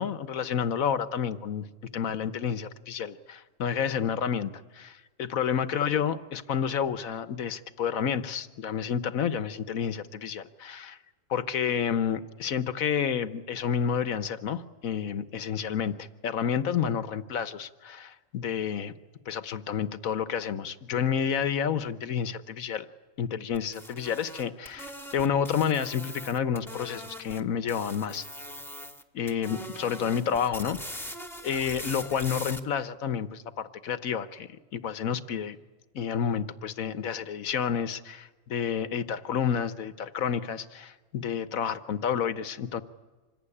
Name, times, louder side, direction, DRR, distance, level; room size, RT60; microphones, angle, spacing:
voice 1, 0.0-1.7 1.9-11.0 11.3-18.9 19.3-22.9 23.2-28.2 29.1-31.0 31.4-35.6 35.9-42.8, left 7 dB, 80° left, 12 dB, 1.5 m, -30 dB
sound 1, 23.5-27.4 27.7-29.0 29.3-32.6, equal, ahead, 1.7 m, -41 dB
26.5 x 22.0 x 9.9 m, 1.3 s
omnidirectional pair, 1.4 m